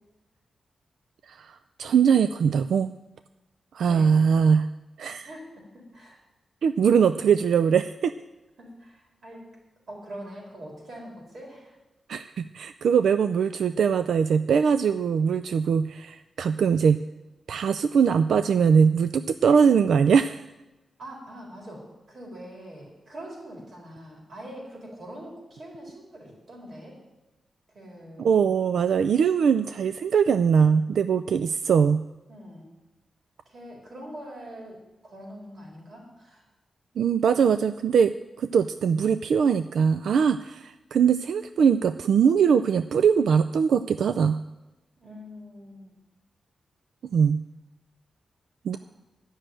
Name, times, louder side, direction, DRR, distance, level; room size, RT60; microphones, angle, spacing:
voice 1, 1.3-2.9 3.7-4.7 5.0-5.3 6.6-8.1 12.1-17.0 17.5-20.4 28.2-32.0 37.0-44.4 47.1-47.4 48.6-48.8, right 6 dB, 85° right, 11 dB, 0.3 m, -21 dB
voice 2, 5.2-6.2 8.6-9.5 9.9-11.8 21.0-27.0 27.7-28.5 32.3-32.7 33.5-36.4 45.0-45.9, equal, 50° right, -1 dB, 4.0 m, -43 dB
12.0 x 6.4 x 8.9 m, 1.0 s
wide cardioid pair, 165°, 0 cm